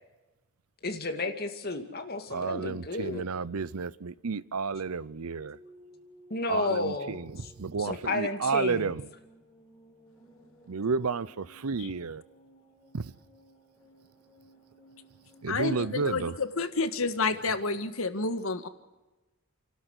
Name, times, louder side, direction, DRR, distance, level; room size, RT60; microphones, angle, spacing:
voice 1, 0.8-3.2 6.3-7.5 7.8-8.9, left 2 dB, 45° left, 2.3 m, -32 dB
voice 2, 2.3-5.6 6.5-9.0 10.7-12.2 12.9-13.1 15.4-16.3, right 5 dB, 85° right, 0.7 m, -31 dB
sound 1, 5.4-17.9, right 1 dB, 5° left, 6.4 m, -58 dB
voice 3, 15.5-18.7, left 3 dB, 70° left, 1.6 m, -30 dB
29.0 x 12.5 x 8.1 m
head